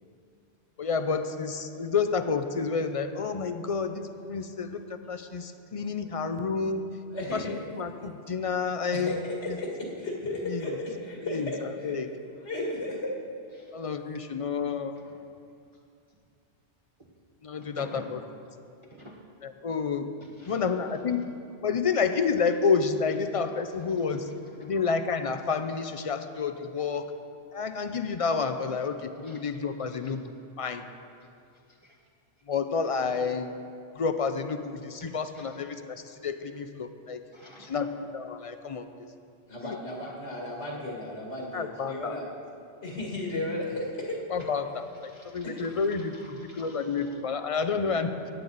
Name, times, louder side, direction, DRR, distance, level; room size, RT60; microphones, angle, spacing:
voice 1, 0.8-6.8 7.3-9.1 10.5-10.6 11.3-11.5 11.8-12.1 13.7-14.9 17.4-18.2 19.4-20.1 20.5-21.3 21.6-24.3 24.6-27.1 27.5-30.2 30.6-30.8 32.5-33.5 34.0-37.2 37.7-38.9 39.6-39.8 41.5-42.1 44.3-48.1, left 5 dB, 45° left, 9 dB, 0.4 m, -29 dB
voice 2, 7.1-7.6 8.9-12.0 12.4-13.1 39.5-42.3 42.8-44.2 45.4-45.7, left 1 dB, 75° left, -2 dB, 2.4 m, -34 dB
voice 3, 17.6-18.1 18.9-19.2 20.2-20.6 24.6-24.7 29.2-29.4 29.8-30.1 31.8-31.9 35.3-35.5 37.3-37.9 45.1-47.2 48.1-48.3, right 1 dB, 30° right, -3 dB, 1.0 m, -50 dB
14.5 x 10.0 x 4.0 m, 2.4 s
omnidirectional pair, 1.2 m